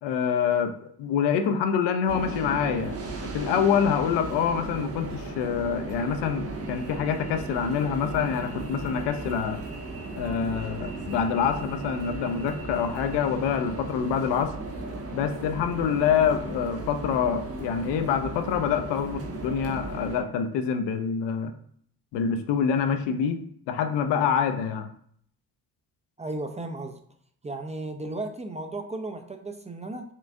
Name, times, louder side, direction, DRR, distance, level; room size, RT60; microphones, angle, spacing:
voice 1, 0.0-2.9 3.2-9.6 10.2-14.6 15.1-21.5 22.1-24.9, left 7 dB, 85° left, 8 dB, 0.6 m, -26 dB
sound 1, 2.1-20.2, right 2 dB, 35° right, 0.9 m, -36 dB
voice 2, 26.2-27.0 27.4-30.0, right 2 dB, 15° right, 6 dB, 0.4 m, -35 dB
5.5 x 2.4 x 2.5 m, 0.63 s
cardioid pair, 80°, 41 cm